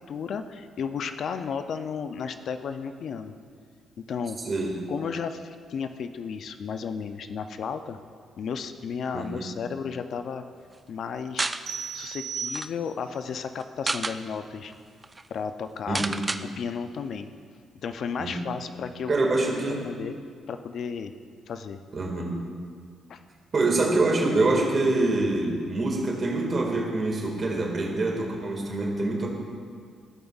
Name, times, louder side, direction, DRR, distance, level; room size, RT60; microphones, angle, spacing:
voice 1, 0.0-3.3 4.0-4.4 4.9-8.0 8.4-10.4 10.9-11.5 11.9-14.7 15.3-16.1 16.6-17.3 17.8-19.1 19.8-20.2 20.5-21.1 21.5-21.8 23.1-23.2, left 6 dB, 60° left, 9 dB, 0.4 m, -33 dB
voice 2, 4.5-4.8 9.1-9.5 15.9-16.2 18.2-18.4 19.1-19.8 21.9-22.3 23.5-29.3, right 2 dB, 40° right, -1 dB, 1.9 m, -25 dB
sound 1, 11.4-11.6 12.1-12.2 12.4-12.7 13.6-14.2 14.7-14.8 15.0-15.2 15.9-16.4, right 3 dB, 25° right, 0.3 m, -29 dB
sound 2, 11.7-13.2, right 6 dB, 90° right, 1.3 m, -35 dB
15.5 x 5.3 x 2.4 m, 2.1 s
cardioid pair, 90°, 0 cm